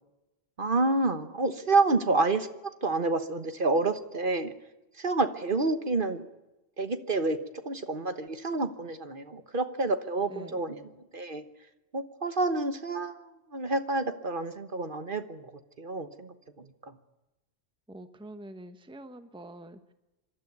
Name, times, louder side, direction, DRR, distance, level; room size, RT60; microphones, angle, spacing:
voice 1, 0.6-2.5 2.8-4.5 4.9-6.2 6.8-7.4 7.6-11.4 11.9-15.5 15.8-16.9, right 3 dB, 50° right, 9 dB, 1.4 m, -29 dB
voice 2, 17.9-19.9, right 1 dB, 5° right, 10 dB, 1.0 m, -46 dB
26.5 x 12.5 x 9.5 m, 1.0 s
omnidirectional pair, 1.1 m